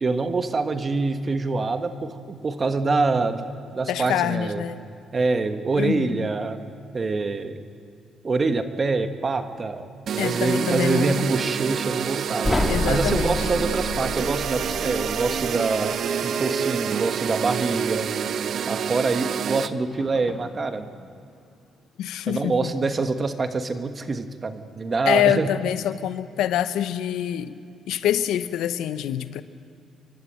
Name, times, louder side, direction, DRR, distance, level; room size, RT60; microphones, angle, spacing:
voice 1, 0.0-3.5 3.7-4.6 5.1-6.6 6.9-7.6 8.2-9.9 10.1-18.1 18.7-20.9 22.3-25.5, right 3 dB, 35° right, 8 dB, 1.4 m, -25 dB
voice 2, 3.9-4.8 5.8-6.2 10.2-11.3 12.7-13.4 22.0-22.7 25.1-27.6 27.9-29.4, left 10 dB, 85° left, 13 dB, 0.7 m, -25 dB
sound 1, 10.1-19.7, right 8 dB, 65° right, 0.6 m, -27 dB
sound 2, 12.4-15.5, left 2 dB, 20° left, 2.4 m, -28 dB
sound 3, 19.9-25.4 25.9-27.7 28.4-28.5, left 4 dB, 45° left, 2.0 m, -49 dB
29.5 x 12.5 x 7.6 m, 2.3 s
cardioid pair, 90°, 0 cm